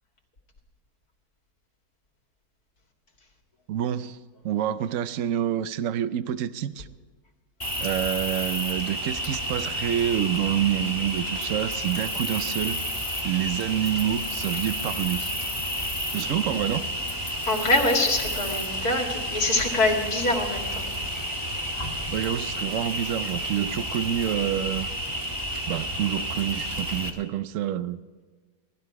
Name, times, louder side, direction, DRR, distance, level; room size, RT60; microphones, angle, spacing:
voice 1, 3.7-4.2 4.4-6.9 7.8-12.8 13.2-15.4 16.1-16.9 22.1-24.9 25.7-28.0, right 10 dB, 65° right, 14 dB, 1.0 m, -27 dB
Cricket, 7.6-27.1, equal, 20° left, 1.7 m, -31 dB
voice 2, 17.5-20.9, left 2 dB, 85° left, 0 dB, 2.8 m, -24 dB
18.0 x 13.0 x 4.8 m, 1.4 s
omnidirectional pair, 1.6 m